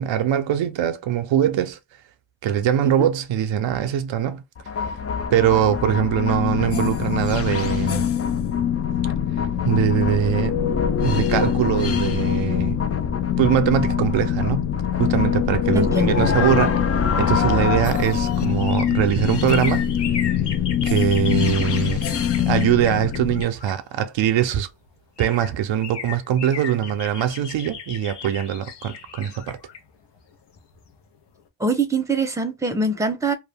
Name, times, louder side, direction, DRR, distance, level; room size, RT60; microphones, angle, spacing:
voice 1, 0.0-1.8 2.4-4.4 5.3-8.1 9.6-10.7 11.0-12.8 13.4-14.7 14.9-19.9 20.8-22.0 22.4-24.7 25.2-29.6, right 10 dB, 85° right, 0.5 m, -22 dB
sound 1, 4.6-23.4, left 8 dB, 35° left, 0.4 m, -23 dB
voice 2, 15.7-16.2 31.6-33.3, right 2 dB, 5° right, 0.6 m, -23 dB
sound 2, 17.5-24.3 24.9-25.0 25.2-31.0 31.3-31.4, left 6 dB, 65° left, 0.7 m, -36 dB
2.4 x 2.1 x 3.3 m
cardioid pair, 70°, 44 cm